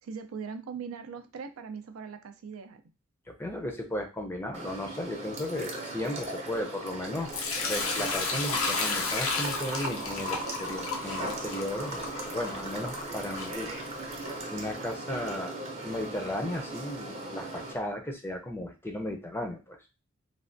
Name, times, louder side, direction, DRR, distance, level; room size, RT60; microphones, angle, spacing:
voice 1, 0.0-2.8, right 6 dB, 85° right, 8 dB, 0.4 m, -40 dB
voice 2, 3.3-13.9 14.5-15.6 15.8-19.8, left 1 dB, 10° left, 2 dB, 0.5 m, -35 dB
sound 1, 4.5-17.7, right 2 dB, 30° right, 0.6 m, -38 dB
Sink (filling or washing) / Liquid, 7.3-14.3, left 4 dB, 85° left, 0.6 m, -33 dB
3.2 x 2.1 x 2.5 m, 0.28 s
head